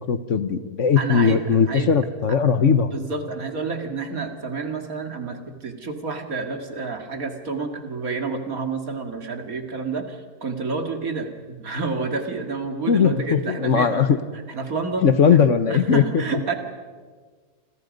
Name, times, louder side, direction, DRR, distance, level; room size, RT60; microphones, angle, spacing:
voice 1, 0.1-2.9 12.9-14.2 15.0-16.2, left 6 dB, 55° left, 11 dB, 1.4 m, -19 dB
voice 2, 1.0-1.9 2.3-2.4 2.8-14.0 14.5-16.5, right 4 dB, 65° right, 5 dB, 2.6 m, -29 dB
29.5 x 26.0 x 5.3 m, 1.5 s
omnidirectional pair, 1.6 m